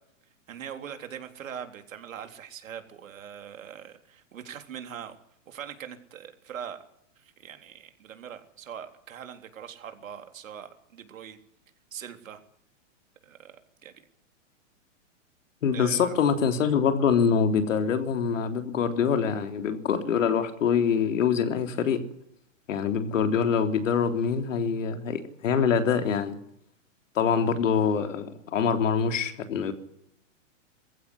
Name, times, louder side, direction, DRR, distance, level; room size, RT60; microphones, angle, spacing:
voice 1, 0.5-5.1 5.5-6.8 7.2-11.4 11.9-12.4 13.2-13.5 13.8-13.9 15.7-16.1, right 8 dB, 80° right, 7 dB, 3.8 m, -42 dB
voice 2, 15.6-22.0 22.7-26.4 27.2-29.7, left 6 dB, 75° left, 8 dB, 3.6 m, -25 dB
22.0 x 15.5 x 9.8 m, 0.75 s
hypercardioid pair, 160°, 39 cm